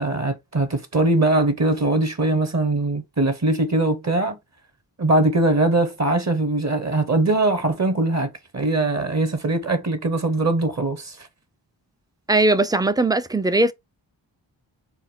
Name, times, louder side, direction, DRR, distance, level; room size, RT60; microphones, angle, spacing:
voice 1, 0.0-4.4 5.0-11.2, right 2 dB, 35° right, 0.8 m, -21 dB
voice 2, 12.3-13.7, right 2 dB, 10° right, 0.3 m, -19 dB
4.2 x 2.2 x 3.6 m
cardioid pair, 50°, 46 cm